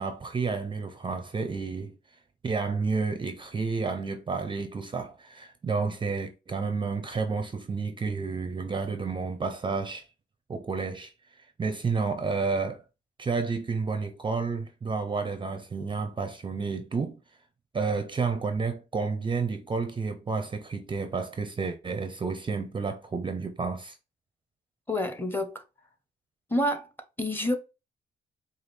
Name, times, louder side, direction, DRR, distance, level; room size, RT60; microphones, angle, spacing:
voice 1, 0.0-1.9 2.4-10.1 10.5-12.8 13.2-17.2 17.7-24.0, right 4 dB, 25° right, 0.5 m, -30 dB
voice 2, 24.9-25.6 26.5-26.9 27.2-27.6, left 1 dB, 10° left, 0.7 m, -28 dB
4.9 x 2.3 x 3.1 m
cardioid pair, 90°, 20 cm